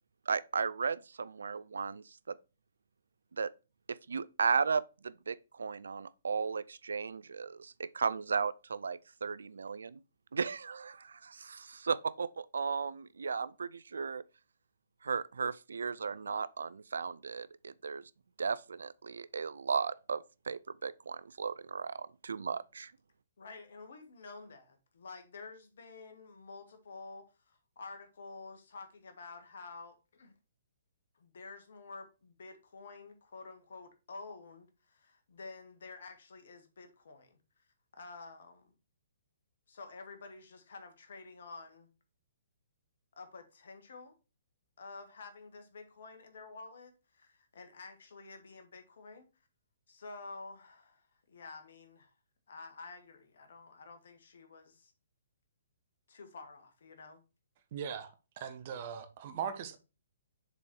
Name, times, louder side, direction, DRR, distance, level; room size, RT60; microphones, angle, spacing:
voice 1, 0.3-2.4 3.4-3.5 3.9-10.0 10.3-14.2 15.0-18.0 18.4-22.9, right 5 dB, 75° right, 0.4 m, -35 dB
voice 2, 23.4-30.3 31.1-37.6 37.9-38.7 39.7-41.9 43.2-44.1 44.8-49.3 49.9-52.1 52.5-54.9 56.1-57.2, left 3 dB, 65° left, 1.6 m, -50 dB
voice 3, 57.7-59.8, right 7 dB, 45° right, 1.1 m, -40 dB
6.8 x 4.2 x 4.5 m
figure-of-eight pair, 125°, 0 cm